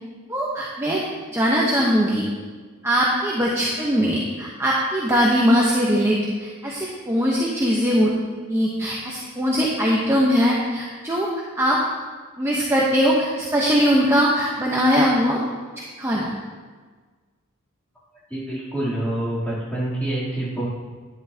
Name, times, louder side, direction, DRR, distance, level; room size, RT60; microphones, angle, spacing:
voice 1, 0.3-1.0 1.3-2.2 2.8-8.1 8.5-11.3 11.6-11.8 12.4-15.4 16.0-16.3, equal, 10° right, -4 dB, 0.9 m, -21 dB
voice 2, 18.3-20.7, right 1 dB, 5° left, -9 dB, 3.0 m, -26 dB
11.0 x 10.5 x 2.8 m, 1.5 s
head